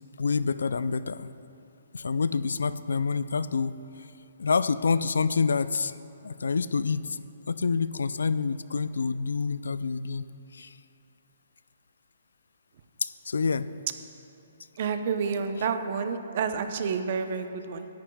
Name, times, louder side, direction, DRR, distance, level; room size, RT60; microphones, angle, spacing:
voice 1, 0.2-1.3 1.9-3.7 4.4-6.0 6.2-10.3 10.5-10.7 13.0-13.7 15.5-15.7, left 5 dB, 90° left, 15 dB, 0.3 m, -27 dB
voice 2, 14.8-17.9, right 6 dB, 45° right, 8 dB, 0.7 m, -29 dB
17.0 x 11.0 x 2.3 m, 2.8 s
hypercardioid pair, 155°, 0 cm